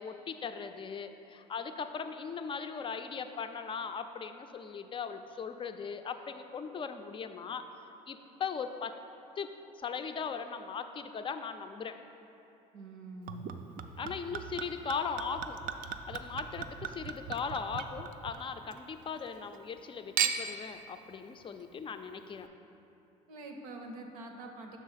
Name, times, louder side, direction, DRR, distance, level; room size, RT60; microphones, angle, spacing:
voice 1, 0.0-7.7 8.1-8.9 9.4-9.5 9.8-12.0 14.0-15.6 16.1-22.5, left 6 dB, 30° left, 8 dB, 0.4 m, -39 dB
voice 2, 12.7-13.6 23.3-24.8, right 2 dB, 85° right, 3 dB, 0.7 m, -45 dB
Chink clink / Liquid, 13.3-18.8 19.1-19.8 20.2-20.7 21.4-21.5, right 7 dB, 50° right, 0.4 m, -37 dB
6.3 x 3.4 x 5.6 m, 2.8 s
hypercardioid pair, 70°, 18 cm